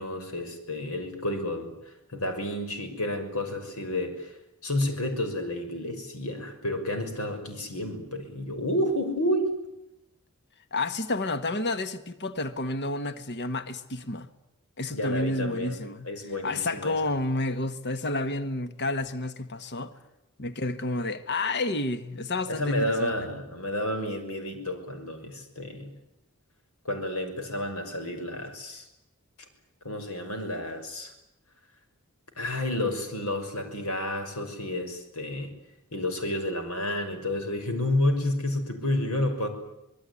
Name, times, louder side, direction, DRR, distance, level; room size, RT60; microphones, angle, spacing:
voice 1, 0.0-1.7 2.1-4.3 4.6-9.5 14.9-15.8 16.0-17.1 22.5-25.9 26.8-28.8 29.8-31.1 32.4-35.5 35.9-39.5, left 1 dB, 80° left, 6.2 m, -30 dB
voice 2, 10.7-14.3 14.8-16.1 16.4-19.9 20.4-23.1, left 2 dB, 50° left, 1.6 m, -30 dB
26.0 x 21.0 x 9.9 m
head